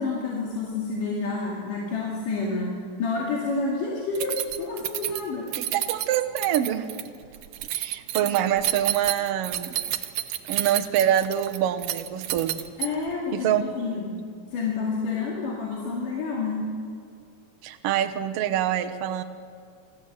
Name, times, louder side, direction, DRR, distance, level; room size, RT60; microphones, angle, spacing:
voice 1, 0.0-5.5 12.8-14.2 14.5-16.7, left 4 dB, 80° left, -3 dB, 3.8 m, -29 dB
Keys jangling, 4.2-13.2, right 13 dB, 85° right, 2.4 m, -30 dB
voice 2, 5.5-6.9 7.7-9.7 10.5-12.6 13.3-13.6 17.6-19.2, right 10 dB, 65° right, 7 dB, 1.7 m, -25 dB
24.5 x 14.5 x 8.1 m, 2.2 s
omnidirectional pair, 3.7 m